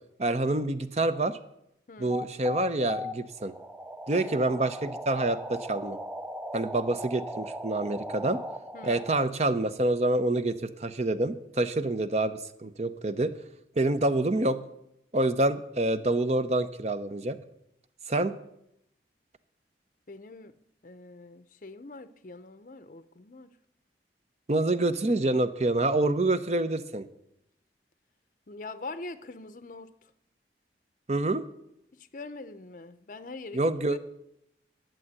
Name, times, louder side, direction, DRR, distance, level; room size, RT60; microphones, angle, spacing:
voice 1, 0.2-1.4 2.0-3.5 4.1-6.0 6.5-8.4 8.8-13.3 13.8-14.6 15.1-17.4 18.1-18.3 24.5-27.0 31.1-31.4 33.5-34.0, right 2 dB, 35° right, 0.7 m, -27 dB
sound 1, 2.1-9.3, equal, 5° right, 0.4 m, -38 dB
voice 2, 4.1-4.4 8.7-9.0 20.1-20.6 20.8-23.5 28.5-29.9 31.9-34.0, left 3 dB, 45° left, 0.6 m, -43 dB
11.5 x 7.7 x 9.5 m
head